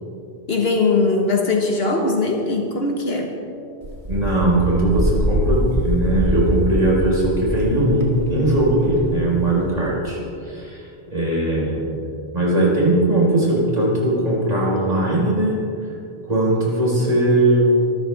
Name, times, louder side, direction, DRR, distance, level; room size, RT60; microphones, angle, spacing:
voice 1, 0.5-3.3, left 3 dB, 70° left, 1 dB, 1.6 m, -20 dB
Wind, 3.8-9.7, equal, 90° right, 2.3 m, -24 dB
voice 2, 4.1-10.2 10.4-10.8 11.1-11.8 12.3-15.5 16.3-17.8, right 1 dB, 40° right, -5 dB, 4.7 m, -19 dB
24.5 x 14.0 x 3.5 m, 2.6 s
omnidirectional pair, 1.1 m